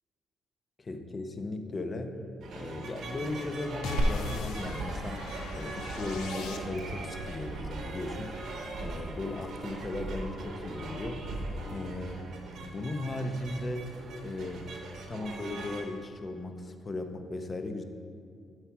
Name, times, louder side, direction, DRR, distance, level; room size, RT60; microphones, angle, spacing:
voice 1, 0.8-2.2 2.5-8.4 8.7-12.3 12.6-13.9 14.2-14.7 15.1-17.8, left 2 dB, 35° left, 6 dB, 0.7 m, -37 dB
sound 1, 2.4-15.8, right 3 dB, 75° right, 1.2 m, -42 dB
sound 2, 3.8-7.1, left 6 dB, 85° left, 0.4 m, -41 dB
Glass, 4.0-11.9, right 1 dB, 90° right, 0.8 m, -37 dB
7.7 x 4.6 x 5.9 m, 2.4 s
cardioid pair, 90°, 0 cm